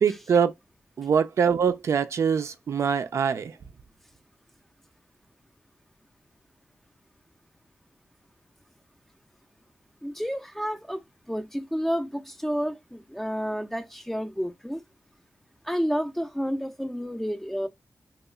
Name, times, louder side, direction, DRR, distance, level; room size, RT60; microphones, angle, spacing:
voice 1, 0.0-0.5 1.0-3.6, right 6 dB, 75° right, 0.4 m, -23 dB
voice 2, 10.0-14.8 15.6-17.7, equal, 5° left, 0.4 m, -30 dB
2.9 x 2.3 x 2.2 m
wide cardioid pair, 85°, 5 cm